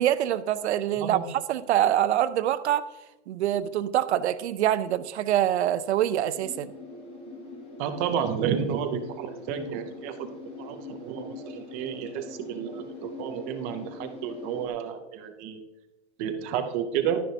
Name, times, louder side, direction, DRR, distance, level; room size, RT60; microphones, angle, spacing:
voice 1, 0.0-2.9 3.3-6.7, right 11 dB, 75° right, 13 dB, 0.6 m, -25 dB
sound 1, 6.3-14.7, left 3 dB, 15° left, 1.1 m, -42 dB
voice 2, 7.8-15.6 16.2-17.2, right 8 dB, 15° right, 7 dB, 0.3 m, -31 dB
11.5 x 10.0 x 2.7 m, 0.97 s
supercardioid pair, 155°, 34 cm